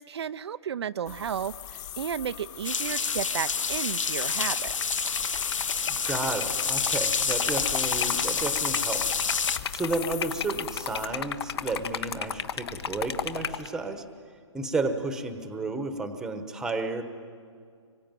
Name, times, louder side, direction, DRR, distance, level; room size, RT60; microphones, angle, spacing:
voice 1, 0.0-5.1, right 8 dB, 60° right, 11 dB, 0.6 m, -33 dB
sound 1, 1.1-11.1, left 11 dB, 35° left, 1.9 m, -41 dB
sound 2, 2.6-9.6, left 5 dB, 90° left, 1.2 m, -28 dB
Liquid, 4.1-13.7, left 7 dB, 55° left, 1.4 m, -34 dB
voice 2, 5.9-14.0 14.5-17.0, right 3 dB, 5° right, 8 dB, 1.1 m, -32 dB
26.0 x 23.5 x 9.2 m, 2.2 s
hypercardioid pair, 160°, 16 cm